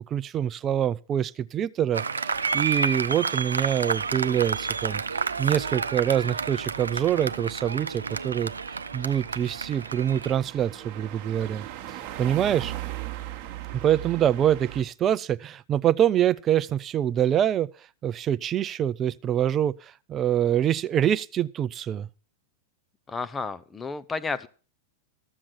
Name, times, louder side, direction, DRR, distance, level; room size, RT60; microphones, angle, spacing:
voice 1, 0.1-5.0 5.4-8.5 8.9-12.7 13.7-17.7 18.0-22.1, right 10 dB, 30° right, 0.5 m, -25 dB
Applause, 1.9-10.3, right 5 dB, 85° right, 0.6 m, -30 dB
sound 1, 2.3-14.8, right 14 dB, 45° right, 1.3 m, -41 dB
voice 2, 23.1-24.5, left 4 dB, 15° left, 0.7 m, -32 dB
13.0 x 7.5 x 5.8 m
figure-of-eight pair, 100°, 0 cm